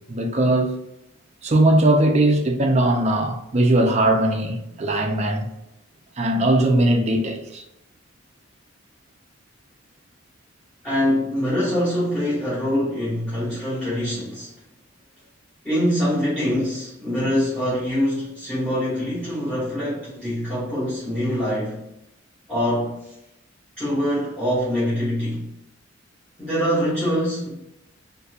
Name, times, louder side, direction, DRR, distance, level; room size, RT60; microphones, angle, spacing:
voice 1, 0.1-0.7 1.4-5.5 6.2-7.6, right 1 dB, 35° right, 0.5 m, -19 dB
voice 2, 10.8-14.5 15.6-21.8 22.5-23.0 23.8-25.4 26.4-27.5, equal, 5° left, 1.4 m, -24 dB
4.0 x 2.6 x 2.4 m
head